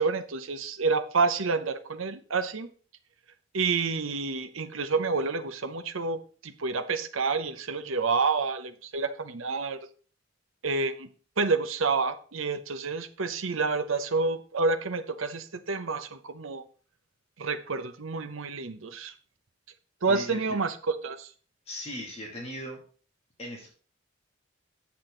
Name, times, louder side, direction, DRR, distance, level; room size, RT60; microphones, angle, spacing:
voice 1, 0.0-2.7 3.5-9.8 10.6-11.1 11.4-16.6 17.4-19.1 20.0-21.3, right 4 dB, 80° right, 10 dB, 0.9 m, -29 dB
voice 2, 20.1-20.6 21.7-22.8 23.4-23.7, left 1 dB, 30° left, -1 dB, 2.6 m, -38 dB
8.6 x 7.8 x 3.9 m, 0.40 s
head